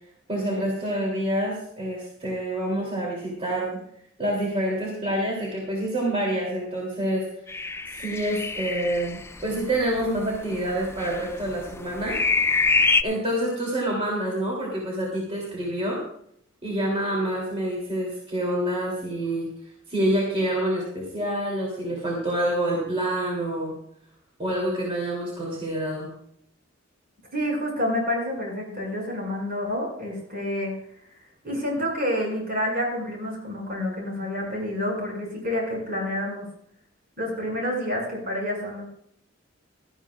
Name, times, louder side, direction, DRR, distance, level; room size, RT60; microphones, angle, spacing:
voice 1, 0.3-3.8 4.2-7.2 8.0-12.2 13.0-16.0 16.6-19.5 19.9-23.7 24.4-26.1, right 1 dB, 30° right, -3 dB, 3.2 m, -27 dB
sound 1, 7.5-13.0, left 4 dB, 15° left, 0.3 m, -25 dB
voice 2, 27.3-30.7 31.4-36.5 37.2-38.9, left 1 dB, 50° right, -1 dB, 6.3 m, -28 dB
17.5 x 13.0 x 2.5 m, 0.67 s
head